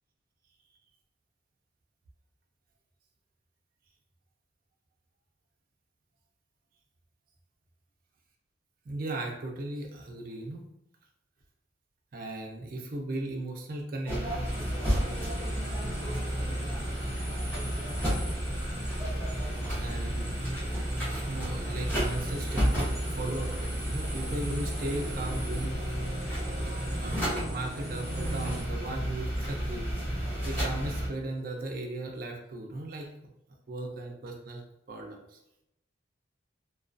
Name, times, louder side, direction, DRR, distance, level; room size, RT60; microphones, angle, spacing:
voice 1, 8.8-10.6 12.1-14.2 19.7-20.3 21.1-25.8 26.6-29.9 30.4-33.1 33.7-34.6 34.9-35.4, right 2 dB, 45° right, 1 dB, 0.4 m, -37 dB
sound 1, 14.1-31.1, equal, 10° left, 0.8 m, -32 dB
sound 2, 14.5-28.6, right 1 dB, 15° right, 1.0 m, -43 dB
2.3 x 2.2 x 2.4 m, 0.82 s
head